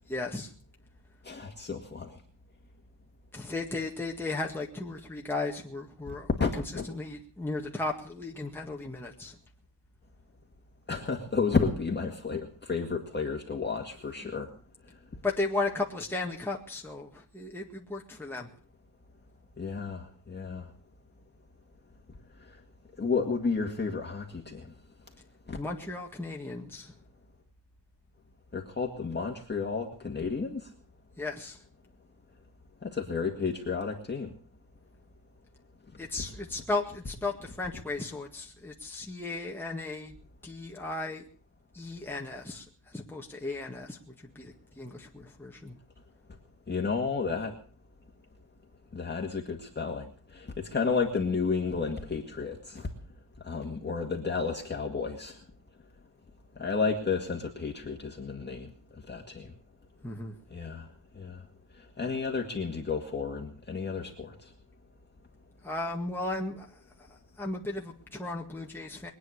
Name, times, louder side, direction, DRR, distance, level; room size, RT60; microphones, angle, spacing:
voice 1, 0.1-0.5 3.3-9.4 14.2-14.3 15.2-18.5 25.5-26.9 31.2-31.6 36.0-40.2 40.4-41.2 41.7-45.8 60.0-60.4 65.6-69.1, left 2 dB, 5° left, -1 dB, 1.8 m, -35 dB
voice 2, 1.2-2.2 6.4-6.9 10.9-14.5 19.6-20.7 22.4-22.6 23.0-24.7 25.5-25.6 28.5-30.7 32.8-34.3 36.2-36.3 46.7-47.5 48.9-52.9 53.4-55.4 56.6-58.7 59.1-59.5 60.5-60.9 61.1-61.4 61.7-64.5, left 4 dB, 25° left, 1 dB, 2.0 m, -32 dB
22.5 x 9.3 x 6.5 m, 0.43 s
cardioid pair, 120°, 44 cm